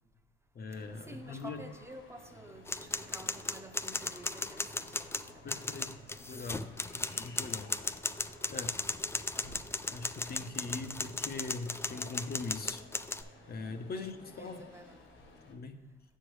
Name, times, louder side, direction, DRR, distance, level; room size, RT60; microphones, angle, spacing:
voice 1, 0.5-1.6 5.4-7.7 8.5-8.8 9.9-12.9 13.1-13.2 13.5-14.6 15.5-15.8, left 3 dB, 50° left, 7 dB, 0.8 m, -41 dB
sound 1, 0.7-15.5, left 2 dB, 70° left, 1.3 m, -56 dB
voice 2, 1.1-5.7 9.3-9.5 13.9-15.0, right 1 dB, 10° right, 6 dB, 0.8 m, -50 dB
sound 2, 2.1-14.0, right 6 dB, 85° left, 1.4 m, -61 dB
sound 3, 2.7-13.2, left 3 dB, 10° left, 0.3 m, -36 dB
7.5 x 6.4 x 3.2 m, 1.1 s
supercardioid pair, 70°, 21 cm